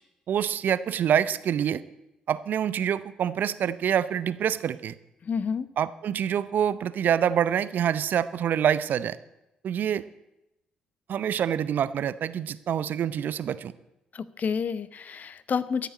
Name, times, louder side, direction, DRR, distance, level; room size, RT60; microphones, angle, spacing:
voice 1, 0.3-1.8 2.3-5.0 5.8-9.2 9.6-10.0 11.1-13.7, right 9 dB, 60° right, 16 dB, 0.6 m, -26 dB
voice 2, 5.2-5.7 14.1-15.9, left 6 dB, 50° left, 16 dB, 0.8 m, -29 dB
13.5 x 6.8 x 8.6 m, 0.90 s
hypercardioid pair, 45°, 4 cm